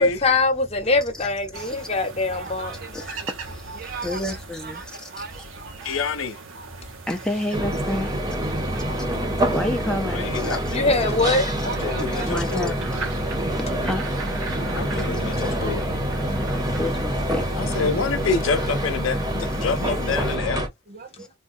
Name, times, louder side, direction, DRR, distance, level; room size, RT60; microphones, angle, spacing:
voice 1, 0.0-2.7 10.7-11.4 15.1-15.5, left 3 dB, 30° left, 0.9 m, -22 dB
sound 1, 1.5-20.4, right 4 dB, 90° right, 0.9 m, -40 dB
voice 2, 2.3-3.3 3.7-4.8 5.1-6.0 8.5-9.5 11.6-12.3 17.8-17.9 20.9-21.3, right 5 dB, 50° right, 0.6 m, -39 dB
voice 3, 2.9-5.1 5.8-6.0 7.1-8.2 9.5-10.8 12.2-12.9 13.8-14.1 16.8-17.5 19.6-19.7 21.2-21.3, left 1 dB, 5° left, 0.4 m, -30 dB
voice 4, 5.8-6.4 10.1-10.9 11.6-12.7 14.7-15.8 17.6-20.7, left 4 dB, 80° left, 0.5 m, -27 dB
sound 2, 7.5-20.7, equal, 20° right, 0.8 m, -26 dB
3.5 x 2.2 x 2.6 m
head